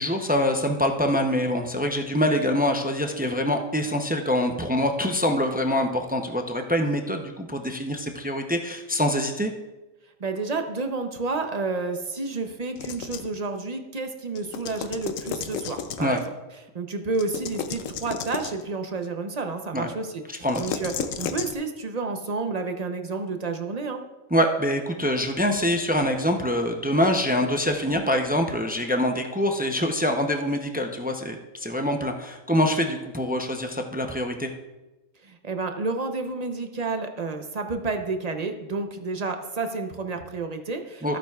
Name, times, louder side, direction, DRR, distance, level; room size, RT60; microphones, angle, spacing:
voice 1, 0.0-9.5 16.0-16.2 19.7-19.9 20.3-20.6 24.3-34.5 41.0-41.2, left 1 dB, 15° right, 4 dB, 0.3 m, -25 dB
voice 2, 10.2-16.2 16.7-24.0 35.2-41.2, right 3 dB, 40° right, 5 dB, 0.7 m, -30 dB
sound 1, 12.8-13.4 14.4-16.3 17.1-18.7 20.4-21.5, left 7 dB, 85° left, 1.1 m, -33 dB
14.5 x 8.9 x 2.4 m, 1.1 s
omnidirectional pair, 1.3 m